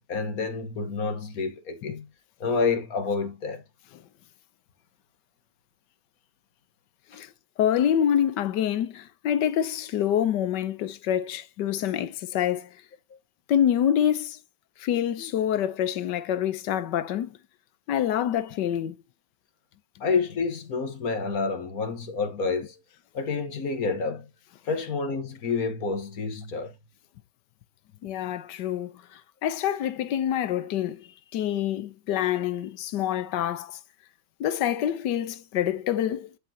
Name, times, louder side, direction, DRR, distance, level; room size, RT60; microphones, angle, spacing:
voice 1, 0.0-2.1 2.4-3.6 7.1-7.2 20.0-22.8 23.1-24.3 24.6-26.7, left 4 dB, 55° left, 1.8 m, -29 dB
voice 2, 7.6-12.7 13.5-14.4 14.8-17.4 17.9-18.9 28.0-33.8 34.4-36.3, left 10 dB, 80° left, 1.5 m, -26 dB
10.5 x 6.0 x 2.9 m
omnidirectional pair, 1.9 m